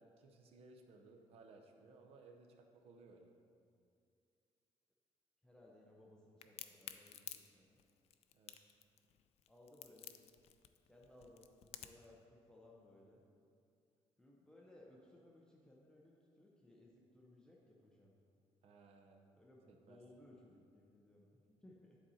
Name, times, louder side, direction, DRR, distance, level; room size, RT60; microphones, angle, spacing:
voice 1, 0.0-3.3 8.3-8.5 18.6-19.2 19.9-20.0, right 3 dB, 60° right, 3 dB, 0.7 m, -61 dB
voice 2, 5.4-7.8 9.5-10.1 10.8-13.2 14.2-18.1 19.3-22.0, left 1 dB, 5° left, -3 dB, 0.7 m, -63 dB
Crack, 6.4-12.1, left 11 dB, 60° left, 0.4 m, -52 dB
10.0 x 4.3 x 4.2 m, 2.4 s
cardioid pair, 165°, 12 cm